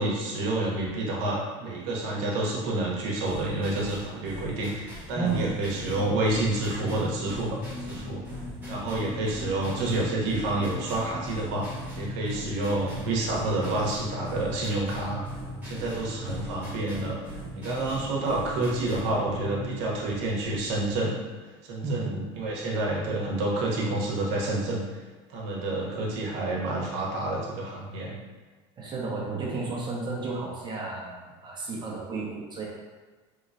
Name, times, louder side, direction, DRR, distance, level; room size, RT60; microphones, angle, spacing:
voice 1, 0.0-8.2 8.7-11.7 12.0-15.2 15.6-17.1 17.6-21.2 21.6-24.8 25.3-28.2, right 2 dB, 75° right, -3 dB, 0.9 m, -29 dB
sound 1, 3.2-19.2, equal, 15° right, 1.2 m, -42 dB
voice 2, 5.1-5.5 21.8-22.1 28.8-32.7, right 4 dB, 30° right, -4 dB, 0.8 m, -32 dB
sound 2, 5.2-21.0, left 1 dB, 60° left, 1.1 m, -40 dB
3.1 x 3.0 x 2.6 m, 1.3 s
supercardioid pair, 105°, 14 cm